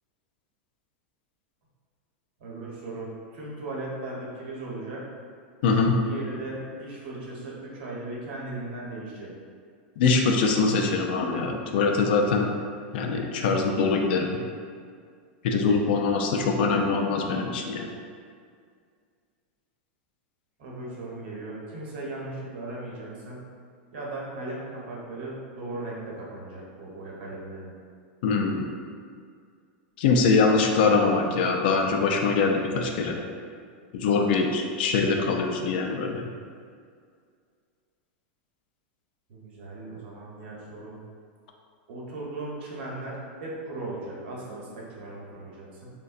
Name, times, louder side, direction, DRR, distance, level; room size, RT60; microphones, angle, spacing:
voice 1, 2.4-5.1 6.0-9.3 16.1-16.4 20.6-23.4 23.9-27.7 39.3-41.0 41.9-45.9, right 2 dB, 65° right, -4 dB, 0.8 m, -37 dB
voice 2, 5.6-6.0 10.0-12.5 12.9-14.4 15.4-17.9 28.2-28.6 30.0-33.2 33.9-36.3, left 4 dB, 65° left, 2 dB, 0.4 m, -23 dB
3.6 x 2.1 x 2.4 m, 2.1 s
supercardioid pair, 145°, 6 cm